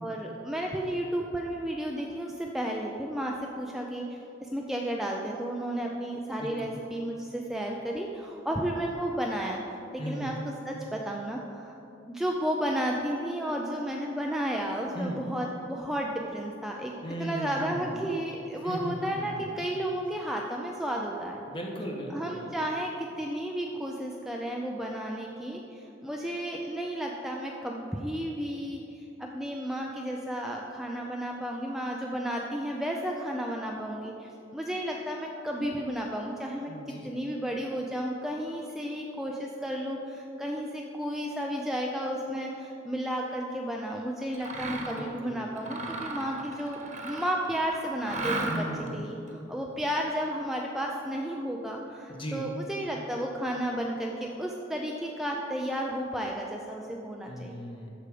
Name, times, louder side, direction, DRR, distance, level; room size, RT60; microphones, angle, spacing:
voice 1, 0.0-11.7 12.0-16.9 17.2-21.4 22.1-36.7 37.0-48.7 48.9-57.6, equal, ahead, -1 dB, 0.5 m, -33 dB
voice 2, 6.4-6.8 10.0-10.4 14.9-15.2 17.0-18.0 18.6-19.4 21.5-22.5 36.7-37.1 44.9-45.7 48.5-49.0 52.1-52.5 57.3-57.9, equal, 30° left, -1 dB, 1.3 m, -37 dB
Mechanisms, 44.3-45.1 45.6-47.5 48.0-48.9, right 2 dB, 40° right, 1.2 m, -35 dB
13.5 x 4.9 x 4.9 m, 2.8 s
head